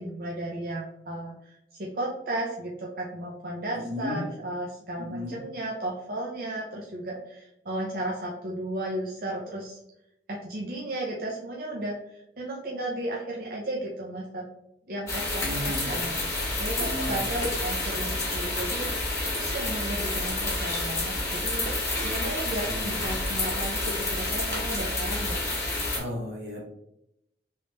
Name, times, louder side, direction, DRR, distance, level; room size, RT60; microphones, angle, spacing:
voice 1, 0.0-9.8 10.3-14.4 14.9-18.9 19.3-25.4, right 1 dB, 55° right, -3 dB, 0.6 m, -34 dB
voice 2, 3.7-4.2 5.0-5.3 15.4-15.9 16.7-17.2 22.6-23.0 25.9-26.7, left 1 dB, 75° right, -3 dB, 1.3 m, -35 dB
sound 1, 15.1-26.0, left 2 dB, 15° left, 1.0 m, -29 dB
3.2 x 2.9 x 3.1 m, 0.82 s
head